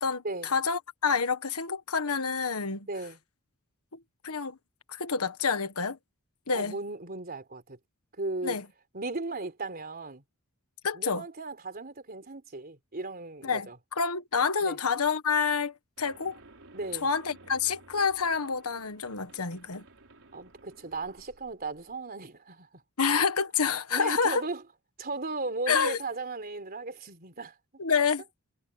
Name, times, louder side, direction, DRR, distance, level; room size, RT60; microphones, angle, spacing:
voice 1, 0.0-2.9 4.2-4.6 4.9-6.0 6.5-6.8 8.4-8.6 10.8-11.2 13.4-13.7 14.0-16.4 17.0-19.8 23.0-24.4 25.7-26.0 27.8-28.2, left 5 dB, 85° left, 1.5 m, -28 dB
voice 2, 2.9-3.2 6.5-7.8 8.2-8.6 8.9-10.2 10.9-13.8 14.6-14.8 16.7-17.1 20.3-22.8 23.9-24.6 25.0-27.6, right 3 dB, 45° right, 3.8 m, -36 dB
sound 1, 16.0-22.0, right 2 dB, 65° right, 4.6 m, -55 dB
head